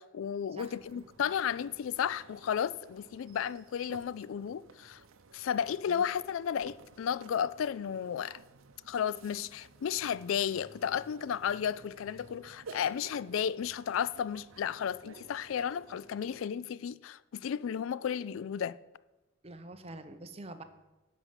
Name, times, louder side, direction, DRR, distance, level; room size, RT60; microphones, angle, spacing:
voice 1, 0.0-5.0 5.3-8.4 8.9-18.8, left 8 dB, 75° left, 0.3 m, -33 dB
voice 2, 0.5-1.0 5.9-6.1 19.4-20.6, right 2 dB, 30° right, 0.8 m, -46 dB
sound 1, 0.5-16.5, right 4 dB, 80° right, 0.7 m, -55 dB
11.5 x 5.5 x 8.1 m
head